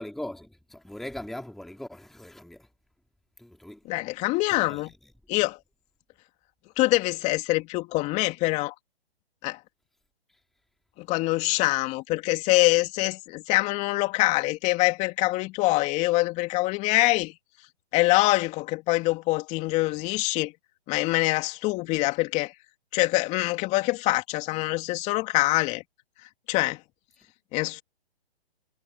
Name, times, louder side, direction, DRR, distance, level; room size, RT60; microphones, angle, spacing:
voice 1, 0.0-2.7 3.4-3.8 4.5-4.8, left 1 dB, ahead, 2.4 m, -40 dB
voice 2, 3.9-4.9 5.3-5.6 6.8-8.7 9.4-9.6 11.0-17.3 17.9-20.5 20.9-22.5 22.9-25.8 26.5-26.8 27.5-27.8, left 20 dB, 20° left, 2.9 m, -24 dB
hypercardioid pair, 145°, 31 cm